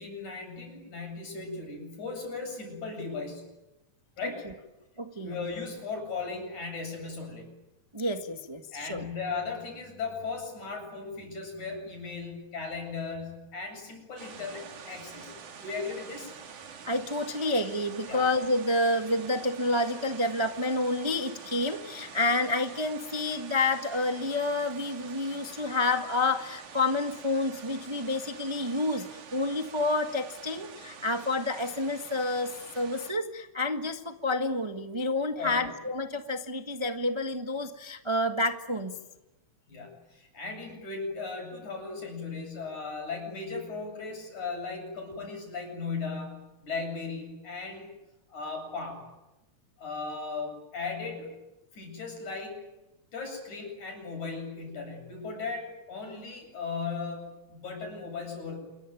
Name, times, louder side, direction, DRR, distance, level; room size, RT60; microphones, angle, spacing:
voice 1, 0.0-3.5 4.2-4.4 5.2-7.5 8.7-15.3 15.6-16.3 18.1-18.3 28.0-28.2 35.4-35.7 39.7-47.9 48.3-49.0 49.8-51.4 51.7-52.6 53.1-58.6, left 4 dB, 80° left, 3 dB, 9.6 m, -37 dB
voice 2, 5.0-5.3 7.9-9.1 16.9-38.9, left 2 dB, 20° right, 5 dB, 0.8 m, -29 dB
sound 1, 14.2-33.1, right 6 dB, 90° right, 3.7 m, -46 dB
28.0 x 22.5 x 9.3 m, 0.98 s
omnidirectional pair, 3.4 m